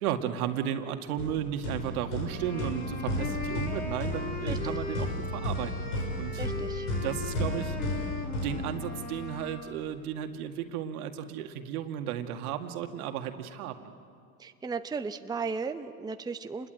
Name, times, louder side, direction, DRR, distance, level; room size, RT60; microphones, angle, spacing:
voice 1, 0.0-6.4 7.0-8.1 8.4-13.9, right 10 dB, 75° right, 6 dB, 2.0 m, -34 dB
sound 1, 1.2-9.2, left 1 dB, 90° left, 6.8 m, -34 dB
sound 2, 2.2-9.7, left 3 dB, 20° left, 3.9 m, -39 dB
voice 2, 4.5-4.8 6.4-6.9 14.4-16.7, right 5 dB, 10° right, 8 dB, 0.8 m, -35 dB
28.5 x 21.0 x 9.0 m, 2.4 s
supercardioid pair, 110°, 44 cm